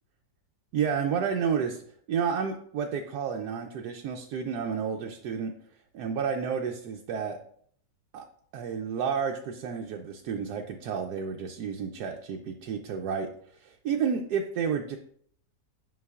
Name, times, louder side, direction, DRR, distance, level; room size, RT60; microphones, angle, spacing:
voice 1, 0.7-5.5 5.9-7.4 8.1-8.2 8.5-13.3 13.6-15.0, right 6 dB, 75° right, 2 dB, 1.1 m, -30 dB
9.4 x 5.9 x 2.4 m, 0.62 s
omnidirectional pair, 1.8 m